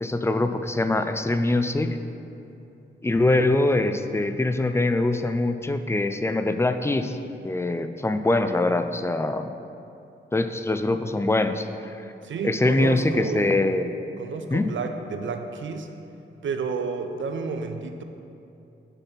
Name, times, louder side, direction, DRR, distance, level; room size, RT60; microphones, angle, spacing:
voice 1, 0.0-2.0 3.0-7.2 7.4-9.5 10.3-12.1 12.4-14.0 14.5-14.7, left 2 dB, 15° left, 8 dB, 0.4 m, -23 dB
voice 2, 12.2-13.6 14.2-15.9 16.4-18.0, right 5 dB, 70° right, 7 dB, 0.6 m, -31 dB
6.6 x 4.2 x 5.9 m, 2.7 s
cardioid pair, 65°, 20 cm